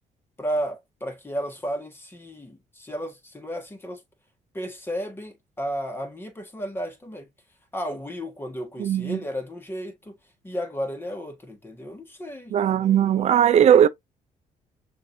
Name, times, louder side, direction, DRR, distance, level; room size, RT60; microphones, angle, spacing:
voice 1, 0.4-4.0 4.5-7.3 7.7-10.2 10.4-13.3, equal, 15° left, 1.6 m, -33 dB
voice 2, 8.8-9.2 12.5-13.9, right 9 dB, 50° right, 0.5 m, -18 dB
6.4 x 2.8 x 2.7 m
cardioid pair, 110°, 14 cm